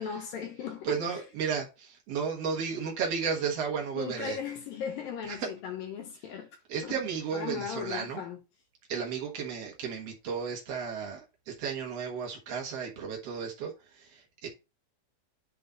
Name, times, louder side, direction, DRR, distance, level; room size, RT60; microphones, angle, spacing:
voice 1, 0.0-1.2 4.0-7.0 7.3-8.4, left 7 dB, 75° left, 2.2 m, -37 dB
voice 2, 0.8-4.4 5.2-5.5 6.7-8.2 8.9-14.5, right 6 dB, 85° right, 1.3 m, -34 dB
9.7 x 3.6 x 4.0 m
omnidirectional pair, 5.2 m